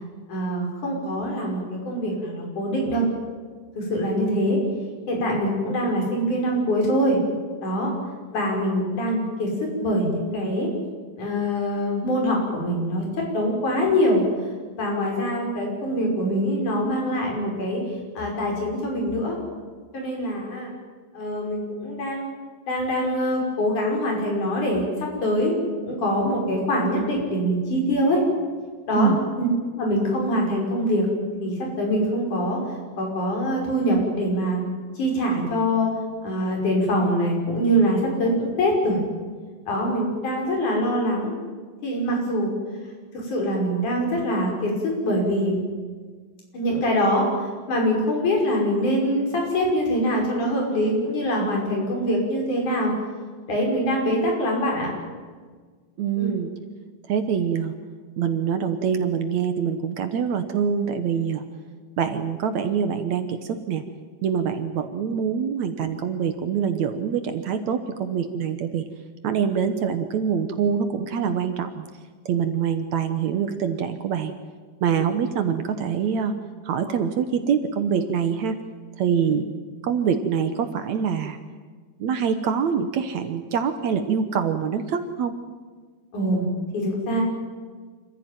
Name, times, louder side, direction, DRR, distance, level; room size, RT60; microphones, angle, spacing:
voice 1, 0.3-3.1 3.7-4.6 5.1-7.2 7.6-7.9 8.3-9.5 9.8-10.7 11.2-13.0 13.3-14.2 14.8-17.8 18.2-19.4 19.9-20.7 21.1-22.3 22.7-25.5 25.8-28.2 28.9-29.1 29.4-29.5 29.7-31.1 31.4-32.6 33.0-34.6 35.0-35.9 36.2-39.0 39.7-41.3 41.8-42.5 43.1-44.7 45.0-45.7 46.5-52.9 53.5-54.9 56.2-56.4 79.2-79.3 86.1-86.5 86.7-87.2, equal, 65° left, 0 dB, 7.2 m, -24 dB
voice 2, 56.0-56.5 57.1-57.7 58.2-61.4 62.0-63.8 64.2-68.8 69.2-71.9 72.3-74.3 74.8-76.3 76.7-78.6 79.0-79.5 79.8-81.4 82.0-85.3, right 7 dB, 65° right, 8 dB, 2.2 m, -25 dB
27.0 x 15.5 x 9.2 m, 1.5 s
omnidirectional pair, 3.8 m